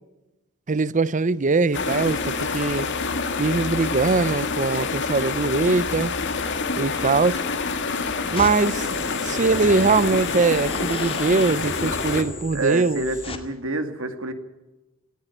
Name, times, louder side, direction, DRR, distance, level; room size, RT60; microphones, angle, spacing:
voice 1, 0.7-2.9 3.4-6.1 6.8-7.4 8.3-8.9 9.2-13.1, right 3 dB, 35° right, 0.6 m, -22 dB
sound 1, 1.7-12.2, left 4 dB, 60° left, 2.0 m, -27 dB
sound 2, 8.4-13.4, left 2 dB, 25° left, 2.1 m, -34 dB
voice 2, 12.5-14.3, right 2 dB, 70° right, 2.2 m, -27 dB
18.0 x 15.0 x 9.9 m
head